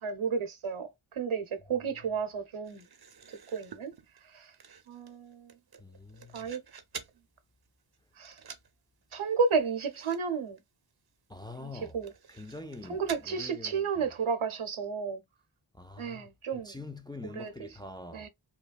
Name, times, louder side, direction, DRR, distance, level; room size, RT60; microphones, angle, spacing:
voice 1, 0.0-2.9 3.3-3.9 4.3-4.5 4.9-5.6 6.3-6.6 8.2-8.4 9.1-10.6 11.6-12.1 12.9-15.2 16.0-16.8 17.2-17.7 18.1-18.3, right 5 dB, 90° right, 0.8 m, -32 dB
sound 1, 2.6-7.2 7.6-8.0 8.2-8.7 9.0-9.1 9.4-9.5 9.9-10.2 10.5-10.6 11.1-11.2 11.9-13.3, right 7 dB, 50° right, 0.6 m, -49 dB
voice 2, 5.8-6.5 11.3-12.0 12.3-14.1 15.7-18.3, left 2 dB, 10° left, 0.3 m, -45 dB
3.0 x 2.2 x 2.2 m
wide cardioid pair, 50°, 48 cm